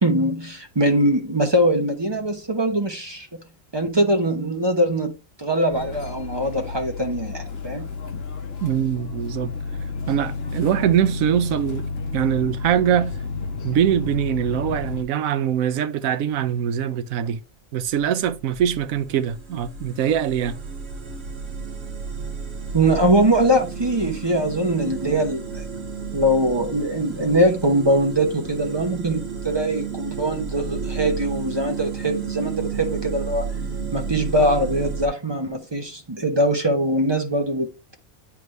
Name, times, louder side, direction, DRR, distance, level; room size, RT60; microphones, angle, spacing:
voice 1, 0.0-3.3 3.7-5.1 5.4-7.9 22.7-25.7 26.1-33.5 33.9-37.9, right 1 dB, 20° right, 0.8 m, -22 dB
sound 1, 5.7-15.0, left 4 dB, 50° left, 1.1 m, -31 dB
voice 2, 8.6-9.5 10.1-11.9 12.1-13.2 13.6-17.4 17.7-20.6, right 9 dB, 80° right, 1.0 m, -22 dB
sound 2, 17.9-35.1, right 6 dB, 50° right, 1.3 m, -32 dB
9.2 x 3.5 x 3.2 m
omnidirectional pair, 1.4 m